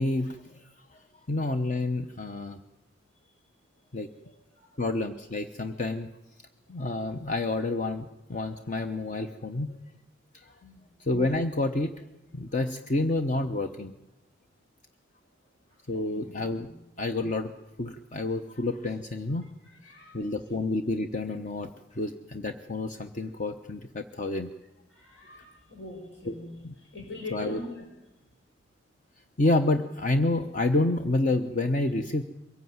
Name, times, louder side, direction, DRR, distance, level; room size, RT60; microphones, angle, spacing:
voice 1, 0.0-2.6 3.9-4.1 4.8-6.1 6.7-9.8 10.3-10.5 11.0-12.0 12.3-13.9 15.9-16.7 17.0-17.5 17.8-19.5 20.1-24.5 26.3-26.4 26.6-26.7 27.3-27.6 29.4-32.2, left 2 dB, 40° left, 7 dB, 0.9 m, -29 dB
voice 2, 4.2-4.7 10.6-10.8 15.7-15.8 16.1-16.4 16.7-16.8 19.6-20.3 24.9-27.8, left 2 dB, 75° left, 0 dB, 5.4 m, -43 dB
22.5 x 16.0 x 9.5 m, 0.94 s
head